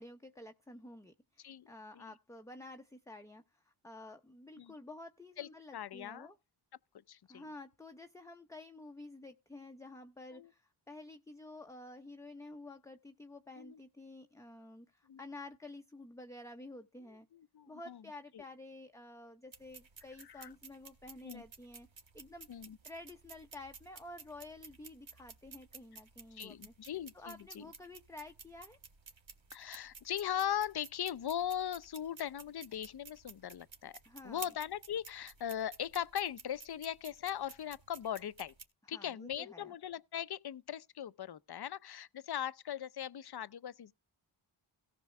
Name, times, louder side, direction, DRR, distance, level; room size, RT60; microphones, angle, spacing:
voice 1, 0.0-6.4 7.3-17.3 17.7-21.9 22.1-22.5 22.8-28.8 34.0-34.5 38.8-39.7, left 2 dB, 5° left, 0.8 m, -51 dB
voice 2, 5.4-6.3 7.1-7.4 10.3-10.5 13.6-13.8 15.1-15.2 17.3-18.0 18.3-18.4 20.4-20.5 21.2-21.4 22.5-22.8 26.3-27.7 29.5-34.0 34.2-38.5 38.9-43.9, left 10 dB, 50° left, 0.6 m, -39 dB
sound 1, 19.5-38.6, right 5 dB, 65° right, 1.9 m, -54 dB
17.5 x 6.0 x 3.2 m
wide cardioid pair, 80°, 50 cm